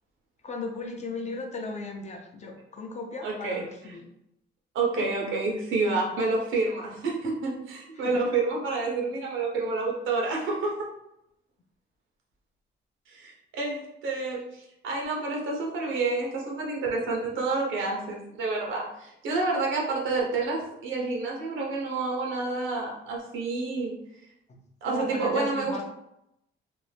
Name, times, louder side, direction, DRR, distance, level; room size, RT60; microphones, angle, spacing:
voice 1, 0.4-4.0 8.0-8.2 24.5-24.6 24.8-25.8, left 3 dB, 35° left, 2 dB, 0.6 m, -36 dB
voice 2, 3.2-3.9 4.7-10.9 13.1-24.0 24.8-25.8, right 3 dB, 80° right, -1 dB, 0.8 m, -29 dB
2.6 x 2.0 x 3.2 m, 0.81 s
cardioid pair, 90°, 20 cm